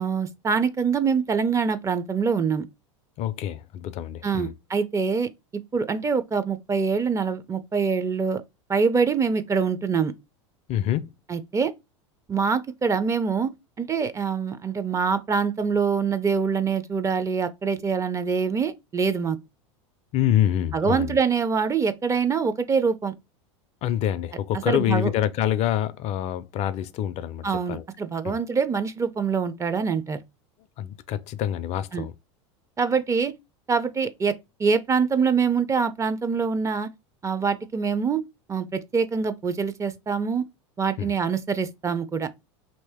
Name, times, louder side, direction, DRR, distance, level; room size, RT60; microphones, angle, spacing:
voice 1, 0.0-2.6 4.2-8.4 8.7-10.1 11.3-11.7 12.3-13.5 13.8-19.4 20.7-23.1 24.7-25.1 27.4-30.2 31.9-32.1 32.8-33.3 33.7-34.3 34.6-36.9 37.2-38.2 38.5-40.5 40.8-42.3, right 5 dB, 20° right, 0.4 m, -24 dB
voice 2, 3.2-4.5 10.7-11.1 20.1-21.2 23.8-27.8 28.2-28.4 30.8-32.1 41.0-41.1, left 11 dB, 45° left, 0.4 m, -26 dB
2.9 x 2.7 x 3.4 m
hypercardioid pair, 100°, 16 cm